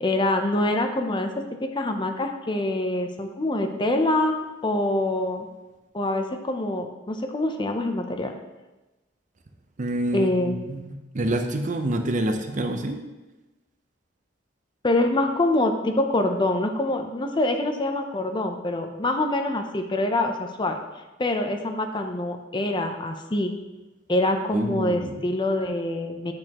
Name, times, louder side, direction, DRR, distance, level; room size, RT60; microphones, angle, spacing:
voice 1, 0.0-1.3 1.7-5.5 5.9-8.3 10.1-10.7 14.8-20.8 21.2-23.5 24.1-26.3, left 1 dB, 25° left, 5 dB, 0.6 m, -25 dB
voice 2, 9.8-13.0 24.5-25.2, right 1 dB, 40° right, 6 dB, 0.6 m, -27 dB
8.6 x 6.4 x 2.9 m, 1.1 s
head